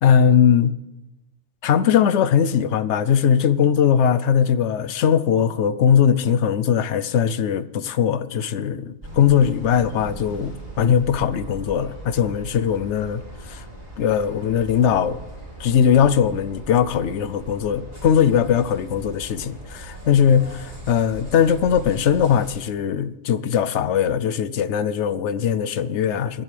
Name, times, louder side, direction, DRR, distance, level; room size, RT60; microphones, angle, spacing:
voice 1, 0.0-0.7 1.6-13.2 13.5-13.6 14.0-15.2 15.6-26.4, left 8 dB, 85° left, 1.0 m, -20 dB
sound 1, 9.0-22.5, right 2 dB, 35° right, 3.2 m, -39 dB
23.0 x 10.5 x 3.4 m
omnidirectional pair, 1.1 m